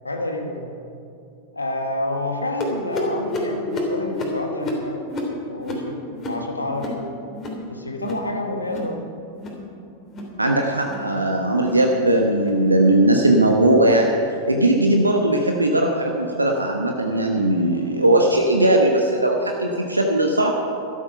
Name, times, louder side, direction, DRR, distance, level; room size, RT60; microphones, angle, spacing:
voice 1, 0.0-0.7 1.5-5.0 5.4-7.0 7.7-9.0, left 1 dB, 80° left, 3 dB, 1.3 m, -29 dB
sound 1, 2.6-7.7 7.9-8.3 8.6-9.0 9.3-9.7 10.0-10.4 10.8-11.1 11.6-11.8 12.4-12.6 13.2-13.4 14.0-14.2 14.9-15.0 15.8-15.9, left 1 dB, 25° left, 3.0 m, -30 dB
voice 2, 10.4-14.1 14.5-20.5, right 1 dB, 85° right, 2 dB, 1.0 m, -18 dB
13.0 x 12.5 x 5.7 m, 2.6 s
figure-of-eight pair, 90°, 0 cm